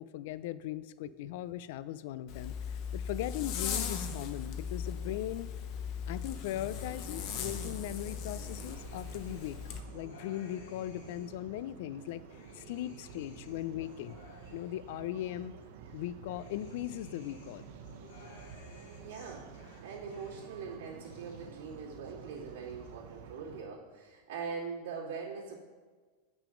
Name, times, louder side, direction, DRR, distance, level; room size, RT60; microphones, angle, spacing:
voice 1, 0.0-2.6 2.9-5.5 6.1-12.2 12.5-14.2 14.5-15.5 15.9-17.7, left 13 dB, 50° left, 16 dB, 0.3 m, -39 dB
Zipper (clothing), 2.3-9.8, left 7 dB, 35° left, 0.7 m, -38 dB
sound 1, 6.7-23.6, right 6 dB, 50° right, 0.6 m, -51 dB
sound 2, 8.3-11.5 11.9-15.4 15.8-20.7 20.9-21.8 22.1-22.9, left 3 dB, 75° left, 2.1 m, -57 dB
voice 2, 19.0-19.5 19.8-25.6, right 5 dB, 85° right, -7 dB, 2.5 m, -42 dB
8.7 x 6.0 x 5.1 m, 1.4 s
supercardioid pair, 175°, 0 cm